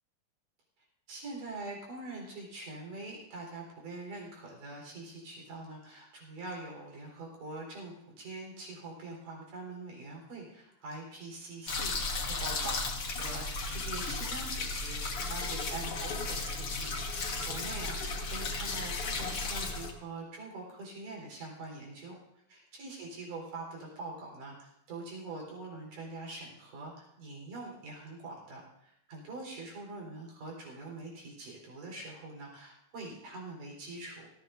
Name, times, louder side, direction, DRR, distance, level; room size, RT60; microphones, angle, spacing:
voice 1, 1.1-12.1 12.4-22.2 22.5-34.3, right 2 dB, 80° right, -1 dB, 5.9 m, -44 dB
sound 1, 11.7-19.9, left 3 dB, 50° left, 2.1 m, -35 dB
19.0 x 16.5 x 2.7 m, 0.79 s
omnidirectional pair, 3.7 m